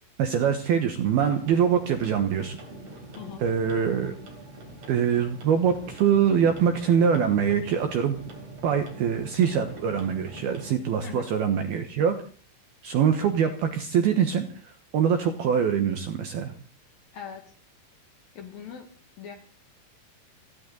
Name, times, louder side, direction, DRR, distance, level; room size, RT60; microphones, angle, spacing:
voice 1, 0.2-2.6 3.4-4.1 4.9-8.2 8.6-12.2 12.8-16.5, right 7 dB, 70° right, 6 dB, 2.5 m, -24 dB
sound 1, 1.0-10.8, right 1 dB, 35° right, 4.3 m, -43 dB
voice 2, 3.1-3.5 11.0-11.3 17.1-17.5 18.3-18.9 19.2-19.4, left 8 dB, 55° left, 5 dB, 2.9 m, -40 dB
30.0 x 11.5 x 4.0 m, 0.39 s
omnidirectional pair, 5.9 m